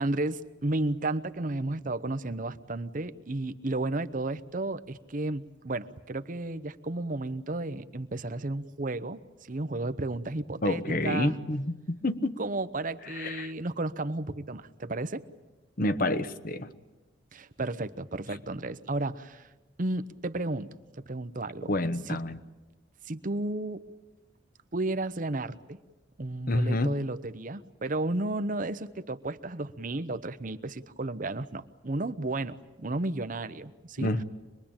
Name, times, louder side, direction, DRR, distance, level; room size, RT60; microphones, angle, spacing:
voice 1, 0.0-9.2 9.5-11.3 12.4-15.2 17.3-19.5 19.8-20.7 21.1-21.7 22.1-22.2 23.1-23.8 24.7-25.8 26.2-34.1, right 2 dB, 45° right, 12 dB, 0.9 m, -33 dB
voice 2, 10.6-12.4 13.0-13.5 15.8-16.7 21.7-22.4 26.5-27.0 34.0-34.2, left 1 dB, 50° left, 11 dB, 1.1 m, -28 dB
25.5 x 21.5 x 8.8 m, 1.1 s
head